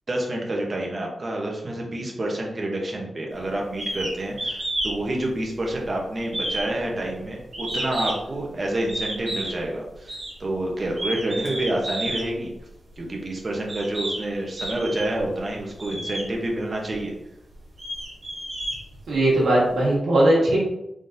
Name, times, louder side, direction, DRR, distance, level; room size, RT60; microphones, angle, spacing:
voice 1, 0.1-12.5 13.0-17.1, right 1 dB, 30° right, 0 dB, 0.8 m, -28 dB
sound 1, 3.8-4.1 4.4-5.0 5.3-5.9 6.3-8.3 8.9-9.6 10.1-10.3 10.9-12.3 13.1-13.2 13.7-14.2 14.6-15.2 15.8-16.3 16.9-17.0 17.5-19.3, right 1 dB, 50° right, 1.4 m, -30 dB
voice 2, 19.1-20.6, right 1 dB, 80° right, -6 dB, 1.4 m, -19 dB
3.7 x 3.7 x 2.6 m, 0.86 s
wide cardioid pair, 155°, 0 cm